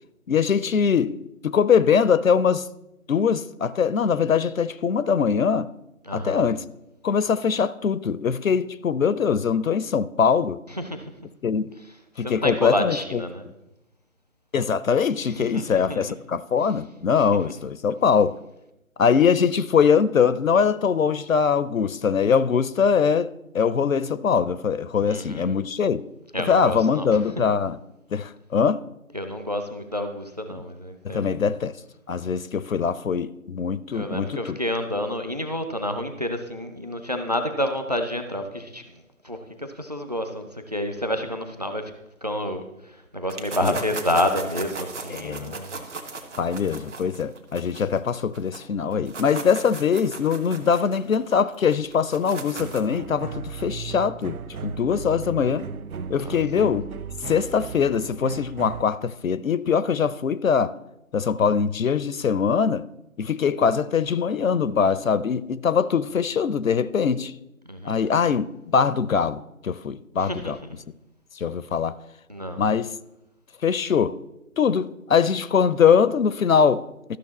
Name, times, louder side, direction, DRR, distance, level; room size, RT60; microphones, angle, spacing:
voice 1, 0.3-2.7 3.1-5.7 6.1-6.6 7.0-10.6 11.4-11.7 12.2-13.2 14.5-18.4 19.0-26.1 26.4-27.8 28.1-28.8 30.5-30.6 31.0-31.8 32.1-34.6 43.6-43.8 45.1-45.6 46.4-55.7 56.1-56.9 57.2-60.8 61.1-62.9 63.2-67.3 67.8-70.6 71.3-72.0 72.6-72.9 73.6-74.2 74.6-77.2, left 6 dB, 70° left, 0.5 m, -22 dB
voice 2, 6.0-6.4 10.7-11.1 12.2-13.5 15.3-16.0 25.1-25.5 26.3-27.1 29.1-31.4 33.9-38.9 39.2-41.9 42.2-45.8 56.1-56.4 67.6-68.1 70.2-70.5 72.3-72.6, left 1 dB, 30° right, 0.5 m, -29 dB
sound 1, 43.3-48.6 48.9-53.0, right 4 dB, 55° right, 1.3 m, -37 dB
sound 2, 52.6-58.8, right 6 dB, 90° right, 0.6 m, -36 dB
13.0 x 6.4 x 4.1 m
figure-of-eight pair, 155°, 42 cm